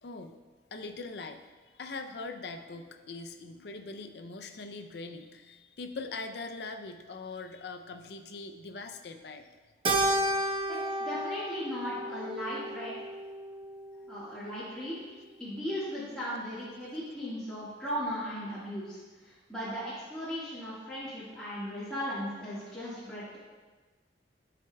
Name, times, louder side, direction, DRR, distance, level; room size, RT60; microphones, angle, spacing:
voice 1, 0.0-0.3 0.7-9.5 14.0-14.2, left 3 dB, 60° left, 6 dB, 0.5 m, -42 dB
Keyboard (musical), 9.9-14.4, right 1 dB, 30° right, 0.5 m, -32 dB
voice 2, 10.7-13.0 14.1-14.9 15.4-23.4, equal, 5° left, -13 dB, 1.5 m, -37 dB
11.5 x 4.9 x 2.3 m, 1.3 s
head